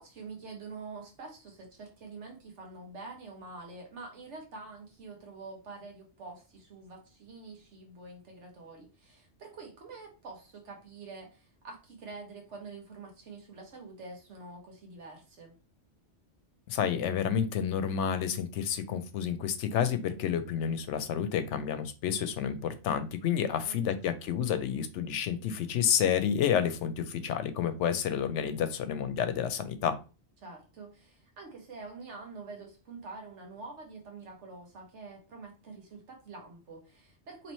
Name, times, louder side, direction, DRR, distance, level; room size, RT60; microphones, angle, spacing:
voice 1, 0.0-15.6 23.4-23.9 30.4-37.5, right 3 dB, 80° right, 1 dB, 1.2 m, -46 dB
voice 2, 16.7-30.0, left 8 dB, 85° left, 11 dB, 0.9 m, -30 dB
4.2 x 3.1 x 3.0 m, 0.33 s
omnidirectional pair, 1.2 m